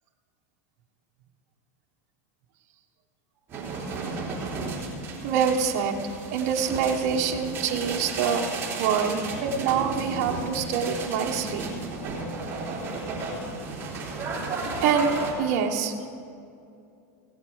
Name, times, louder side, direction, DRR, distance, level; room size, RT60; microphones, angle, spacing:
sound 1, 3.5-15.3, right 3 dB, 30° right, 3.3 m, -33 dB
voice 1, 5.2-6.0 6.3-11.7 14.6-16.1, right 6 dB, 55° right, 1 dB, 1.3 m, -26 dB
16.5 x 8.4 x 6.3 m, 2.5 s
supercardioid pair, 130°, 8 cm